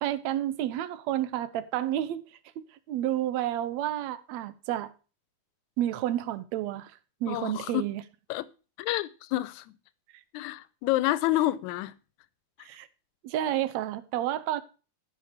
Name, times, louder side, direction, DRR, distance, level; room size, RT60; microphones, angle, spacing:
voice 1, 0.0-4.9 5.8-8.0 12.6-12.9 13.2-14.6, right 12 dB, 75° right, 1.9 m, -30 dB
voice 2, 7.3-7.9 8.3-8.5 8.8-9.8 10.3-11.9, left 16 dB, 80° left, 2.0 m, -28 dB
14.5 x 6.1 x 5.0 m
omnidirectional pair, 3.4 m